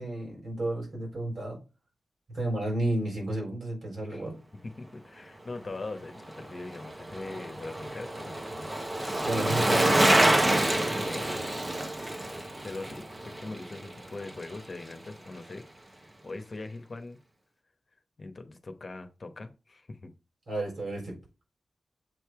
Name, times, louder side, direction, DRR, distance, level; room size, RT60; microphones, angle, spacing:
voice 1, 0.0-1.6 2.3-4.3 9.2-10.1 20.5-21.1, right 1 dB, 65° right, -1 dB, 3.9 m, -31 dB
voice 2, 4.6-8.7 11.0-11.6 12.6-15.7 16.2-17.2 18.2-20.1, left 2 dB, 50° left, 7 dB, 1.0 m, -41 dB
Bicycle, 6.2-14.6 14.9-15.0, right 1 dB, 30° right, 1.0 m, -27 dB
7.8 x 3.2 x 4.7 m, 0.30 s
cardioid pair, 75°, 0 cm